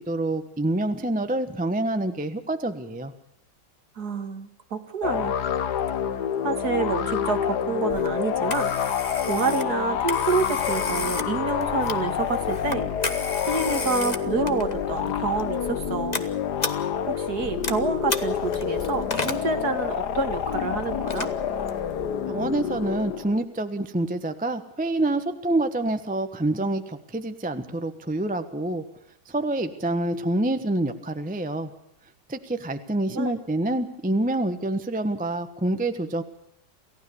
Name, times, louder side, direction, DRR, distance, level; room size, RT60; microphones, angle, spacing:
voice 1, 0.0-3.1 22.3-28.8 29.3-31.7 32.3-36.2, right 2 dB, 5° right, 8 dB, 0.9 m, -27 dB
voice 2, 4.0-5.3 6.4-8.7 9.2-12.9 13.4-16.3 17.1-21.4 33.1-33.4, right 4 dB, 50° right, 8 dB, 2.3 m, -28 dB
sound 1, 5.0-23.4, left 8 dB, 60° left, 1.5 m, -28 dB
Telephone, 7.9-22.1, left 3 dB, 25° left, 1.2 m, -35 dB
28.5 x 15.5 x 7.0 m, 0.78 s
omnidirectional pair, 2.2 m